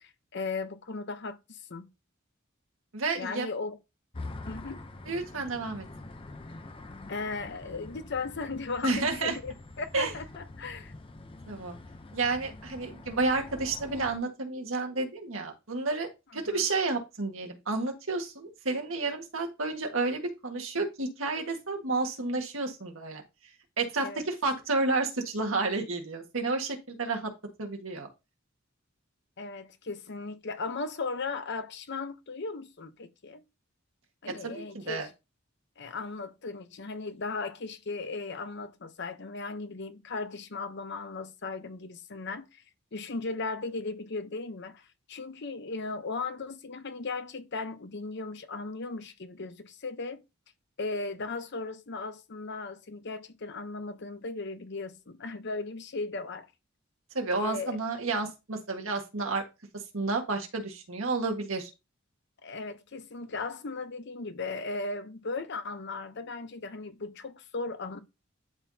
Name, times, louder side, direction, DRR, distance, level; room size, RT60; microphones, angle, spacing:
voice 1, 0.0-1.9 3.1-3.8 4.5-4.8 7.1-10.9 16.3-16.6 24.0-24.2 29.4-33.4 34.2-35.1 35.8-42.6 42.9-50.2 50.8-56.5 57.3-57.8 62.4-68.0, left 3 dB, 55° left, 0.8 m, -37 dB
voice 2, 2.9-3.5 5.1-5.9 8.8-9.4 9.9-10.1 11.5-11.8 12.1-23.2 23.8-27.3 27.6-28.1 34.4-35.1 57.1-59.4 59.7-61.7, right 3 dB, 80° right, 1.7 m, -31 dB
sound 1, 4.1-14.2, left 2 dB, 25° left, 0.6 m, -45 dB
11.5 x 3.9 x 2.8 m
head